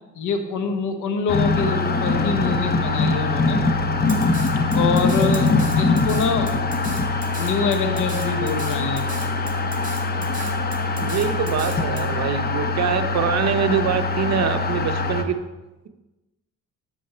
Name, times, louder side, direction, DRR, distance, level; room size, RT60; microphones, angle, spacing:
voice 1, 0.1-3.6 4.7-5.5 5.8-6.6 7.4-9.1, left 4 dB, 80° left, 7 dB, 1.2 m, -25 dB
sound 1, 1.3-15.2, left 3 dB, 30° left, 0.9 m, -23 dB
Drum kit, 4.1-12.0, right 4 dB, 25° right, 2.0 m, -37 dB
voice 2, 10.9-15.4, right 7 dB, 60° right, 8 dB, 0.9 m, -24 dB
9.2 x 7.5 x 4.4 m, 1.1 s
cardioid pair, 90°, 30 cm